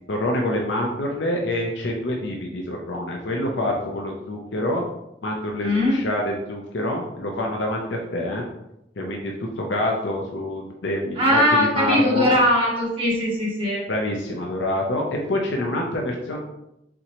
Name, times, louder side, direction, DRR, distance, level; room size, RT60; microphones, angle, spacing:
voice 1, 0.1-4.8 5.2-8.4 9.0-12.3 13.9-16.4, left 1 dB, 85° left, 0 dB, 0.6 m, -26 dB
voice 2, 5.6-6.0 11.2-13.8, left 1 dB, 30° right, -5 dB, 1.6 m, -20 dB
4.4 x 3.8 x 3.0 m, 0.85 s
head